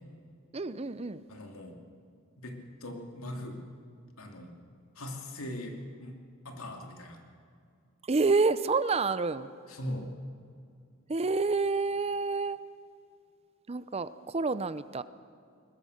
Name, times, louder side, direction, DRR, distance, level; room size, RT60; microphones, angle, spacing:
voice 1, 0.5-1.2 8.1-9.5 11.1-12.6 13.7-15.0, right 4 dB, 30° right, 15 dB, 0.6 m, -28 dB
voice 2, 1.3-1.8 2.4-3.6 4.2-4.5 4.9-6.2 6.4-7.2 9.7-10.1, left 1 dB, 75° left, 3 dB, 2.9 m, -40 dB
22.0 x 20.0 x 6.6 m, 2.3 s
head